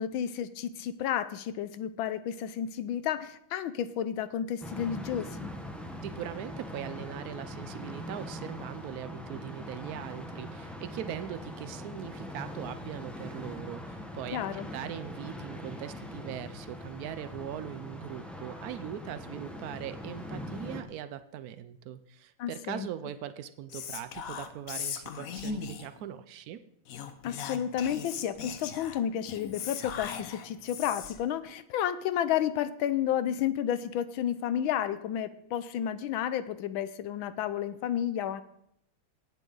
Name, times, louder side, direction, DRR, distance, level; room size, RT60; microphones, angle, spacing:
voice 1, 0.0-5.5 14.3-14.7 22.4-22.9 27.2-38.4, left 10 dB, 80° left, 14 dB, 1.4 m, -31 dB
sound 1, 4.6-20.8, left 1 dB, ahead, 0.6 m, -42 dB
voice 2, 6.0-26.6, right 10 dB, 90° right, 11 dB, 0.8 m, -40 dB
Whispering, 23.7-26.0 26.9-31.3, left 7 dB, 60° left, 0.9 m, -39 dB
18.0 x 7.3 x 3.9 m, 0.74 s
omnidirectional pair, 2.3 m